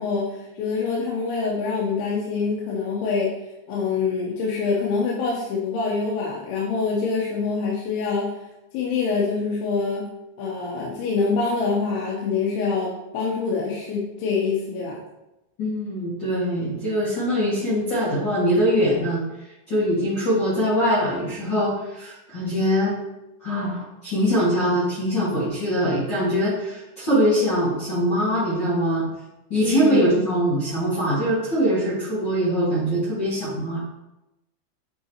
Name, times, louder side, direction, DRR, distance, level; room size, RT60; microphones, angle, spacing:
voice 1, 0.0-3.3 3.7-8.3 8.7-10.1 10.4-15.0 29.6-30.0, left 4 dB, 90° left, -4 dB, 3.3 m, -25 dB
voice 2, 15.6-19.2 19.7-22.9 23.4-29.1 29.5-33.8, equal, 55° left, -11 dB, 1.2 m, -22 dB
8.4 x 4.8 x 2.9 m, 0.96 s
omnidirectional pair, 5.2 m